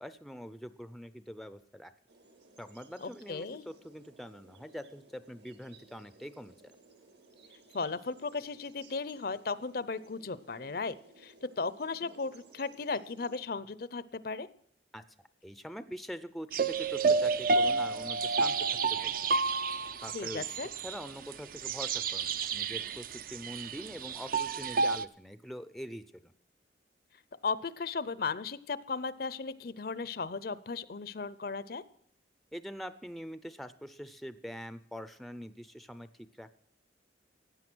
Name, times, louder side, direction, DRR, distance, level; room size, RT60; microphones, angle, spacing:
voice 1, 0.0-1.9 2.6-6.6 14.9-15.0 15.4-19.2 20.0-20.4 20.8-26.3 32.5-36.5, equal, ahead, 12 dB, 0.5 m, -44 dB
sound 1, 2.1-13.4, right 3 dB, 65° right, 2.1 m, -59 dB
voice 2, 3.0-3.6 7.7-14.5 20.1-20.7 27.4-31.8, left 4 dB, 50° left, 17 dB, 0.6 m, -36 dB
sound 2, 16.5-25.0, right 4 dB, 50° right, 0.5 m, -30 dB
15.5 x 9.5 x 6.1 m, 0.67 s
head